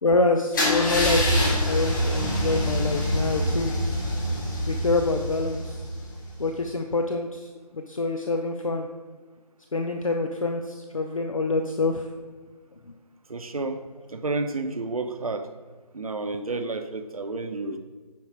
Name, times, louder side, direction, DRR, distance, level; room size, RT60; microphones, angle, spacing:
voice 1, 0.0-3.7 4.7-5.8 6.4-8.9 9.7-12.1 12.9-13.0, left 3 dB, 55° left, 4 dB, 0.7 m, -26 dB
Car / Engine starting / Idling, 0.5-6.4, equal, 30° left, 1.8 m, -26 dB
Bass guitar, 2.2-6.5, equal, 85° right, 1.5 m, -35 dB
voice 2, 13.3-13.8 14.1-15.5 15.9-17.8, right 3 dB, 60° right, 7 dB, 0.9 m, -30 dB
9.5 x 4.7 x 4.7 m, 1.4 s
figure-of-eight pair, 165°, 20 cm